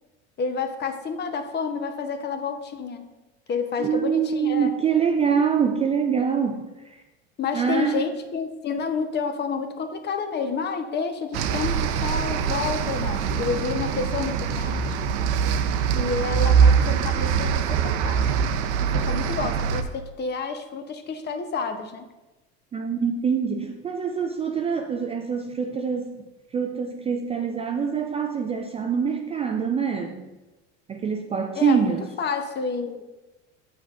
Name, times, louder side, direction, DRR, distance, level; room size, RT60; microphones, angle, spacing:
voice 1, 0.4-3.0 3.5-4.7 7.4-15.0 15.9-18.2 19.0-22.1 31.5-33.0, left 5 dB, 30° left, 7 dB, 0.7 m, -29 dB
voice 2, 3.8-7.0 7.5-8.0 22.7-26.1 26.5-30.2 30.9-32.0, right 6 dB, 20° right, 4 dB, 0.3 m, -25 dB
sound 1, 11.3-19.8, right 7 dB, 75° right, 0.6 m, -23 dB
8.2 x 6.1 x 2.4 m, 1.1 s
supercardioid pair, 100°, 34 cm